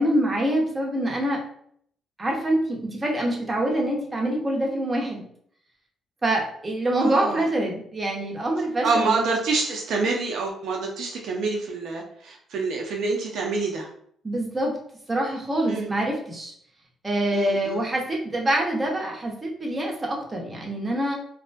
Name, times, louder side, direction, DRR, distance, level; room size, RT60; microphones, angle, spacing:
voice 1, 0.0-1.4 2.2-5.3 6.2-9.2 14.2-14.7 15.1-16.5 17.0-21.1, right 1 dB, 25° right, -1 dB, 0.7 m, -25 dB
voice 2, 7.0-7.5 8.8-13.9 15.7-15.9 17.3-17.8, right 4 dB, 75° right, 1 dB, 0.4 m, -26 dB
2.3 x 2.1 x 2.5 m, 0.64 s
cardioid pair, 90°, 0 cm